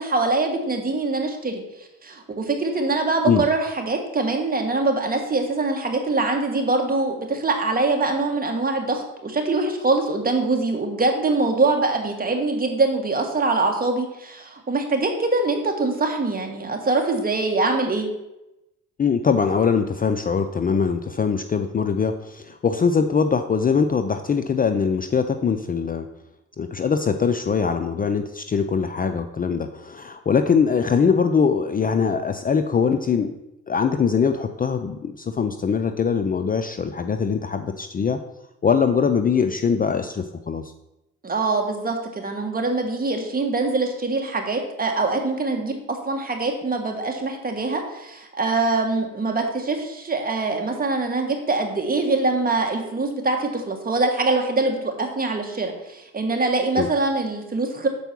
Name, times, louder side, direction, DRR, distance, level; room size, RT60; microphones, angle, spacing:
voice 1, 0.0-1.6 2.0-18.1 41.2-57.9, right 3 dB, 30° right, 3 dB, 1.6 m, -23 dB
voice 2, 19.0-26.1 26.6-33.4 33.7-38.2 38.6-40.6 56.8-56.9, left 6 dB, 30° left, 8 dB, 0.5 m, -22 dB
6.9 x 4.5 x 6.0 m, 0.91 s
cardioid pair, 90°, 30 cm